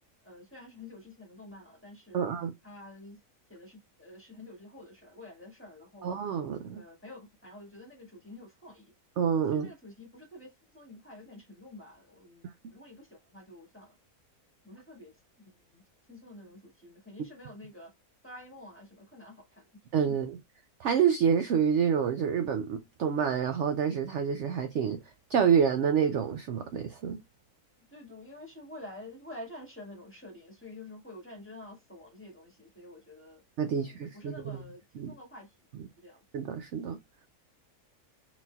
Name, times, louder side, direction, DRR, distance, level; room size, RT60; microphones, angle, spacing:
voice 1, 0.2-2.2 2.6-3.2 3.5-6.1 6.7-8.9 9.5-14.0 14.6-15.8 16.1-17.9 18.2-19.7 20.1-20.2 27.8-33.4 33.7-35.5 36.0-36.2, left 1 dB, 10° left, 1.6 m, -49 dB
voice 2, 2.1-2.5 6.0-6.8 9.2-9.7 19.9-20.4 20.8-25.0 25.3-27.2 33.6-34.6 35.0-35.1 36.3-37.0, right 7 dB, 65° right, 0.7 m, -28 dB
4.0 x 4.0 x 2.2 m
omnidirectional pair, 1.6 m